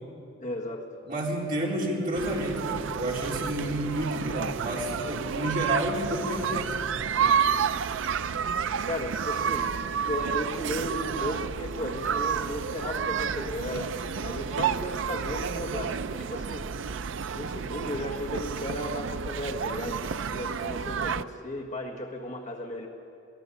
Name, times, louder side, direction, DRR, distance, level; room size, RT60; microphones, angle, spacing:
voice 1, 0.4-0.9 2.3-2.4 5.3-5.4 8.8-9.7 10.0-13.9 14.2-16.7 17.3-22.9, left 1 dB, 35° left, 1 dB, 1.6 m, -35 dB
voice 2, 1.0-6.8, right 1 dB, 45° right, -4 dB, 4.0 m, -30 dB
sound 1, 2.1-21.2, right 7 dB, 70° right, 0.5 m, -30 dB
22.0 x 16.5 x 7.1 m, 2.6 s
head